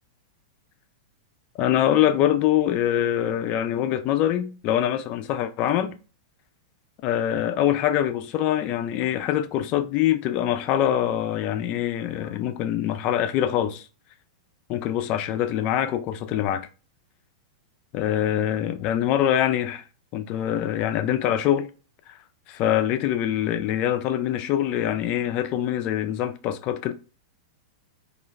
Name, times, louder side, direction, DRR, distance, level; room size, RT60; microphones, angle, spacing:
voice 1, 1.6-6.0 7.0-13.9 14.7-16.7 17.9-19.8 20.1-21.7 22.1-22.2 22.5-26.9, left 11 dB, 40° left, 0.3 m, -24 dB
2.4 x 2.1 x 3.1 m
hypercardioid pair, 105°, 3 cm